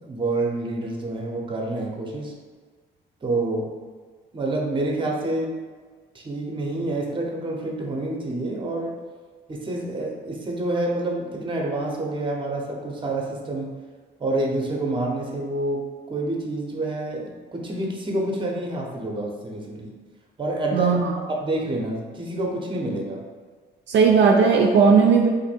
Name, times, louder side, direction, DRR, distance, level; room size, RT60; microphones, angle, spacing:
voice 1, 0.0-2.3 3.2-3.7 4.3-5.6 6.1-9.0 9.5-13.7 14.2-19.9 20.4-21.0 21.3-23.2, right 2 dB, 25° right, 0 dB, 0.7 m, -28 dB
voice 2, 20.7-21.0 23.9-25.3, right 5 dB, 65° right, 1 dB, 0.4 m, -16 dB
2.6 x 2.6 x 4.2 m, 1.5 s
cardioid pair, 90°, 20 cm